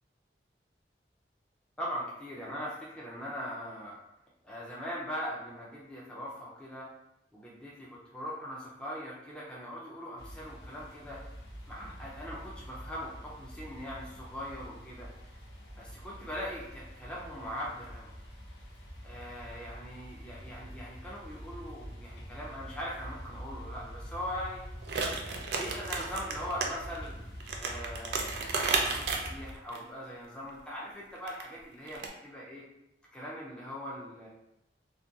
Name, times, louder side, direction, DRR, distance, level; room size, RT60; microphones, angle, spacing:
voice 1, 1.8-4.0 4.4-6.9 7.3-11.2 11.7-14.0 14.3-15.1 15.8-18.1 19.0-24.6 25.5-27.2 27.6-32.6 33.1-34.3, equal, 5° left, -6 dB, 0.4 m, -41 dB
sound 1, 10.2-29.5, equal, 75° left, 0.5 m, -46 dB
sound 2, 24.8-26.7 26.9-27.0 27.4-29.8 31.2-31.5 31.9-32.1, right 4 dB, 70° right, 0.4 m, -32 dB
2.4 x 2.2 x 2.7 m, 0.87 s
head